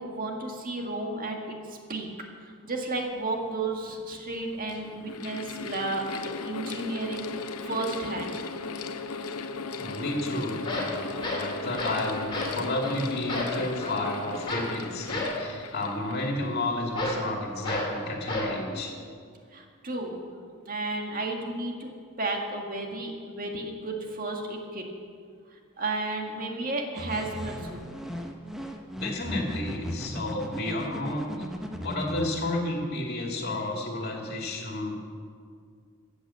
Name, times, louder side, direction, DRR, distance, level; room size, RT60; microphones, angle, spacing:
voice 1, 0.0-2.1 2.4-8.4 19.5-20.2 20.6-21.9 22.2-24.8 25.5-27.8, right 2 dB, 40° right, 1 dB, 1.8 m, -33 dB
Mechanical fan, 3.4-3.5 4.3-17.0, left 4 dB, 85° left, 0.7 m, -37 dB
voice 2, 9.8-18.9 29.0-31.5 31.8-35.0, left 1 dB, 45° left, 0 dB, 2.3 m, -31 dB
sound 1, 10.1-10.2 10.5-12.0 12.3-12.6 12.8-13.0 13.3-14.0 14.5-14.7 15.1-15.4 16.9-17.3 17.6-17.9 18.3-18.6, left 2 dB, 20° left, 2.5 m, -31 dB
sound 2, 27.0-32.3, equal, ahead, 0.9 m, -37 dB
14.5 x 8.3 x 7.5 m, 2.1 s
head